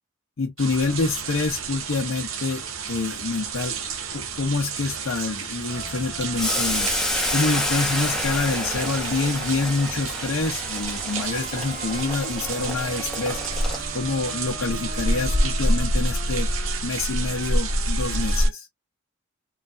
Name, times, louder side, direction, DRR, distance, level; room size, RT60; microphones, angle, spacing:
voice 1, 0.4-3.8 4.1-6.9 7.3-16.5 16.8-18.7, left 3 dB, 75° left, 0.6 m, -27 dB
sound 1, 0.6-18.5, right 2 dB, 90° right, 0.9 m, -28 dB
sound 2, 5.7-18.5, right 2 dB, 45° right, 1.3 m, -40 dB
Boiling, 6.4-14.2, left 1 dB, 5° left, 0.9 m, -29 dB
3.1 x 2.3 x 2.4 m
head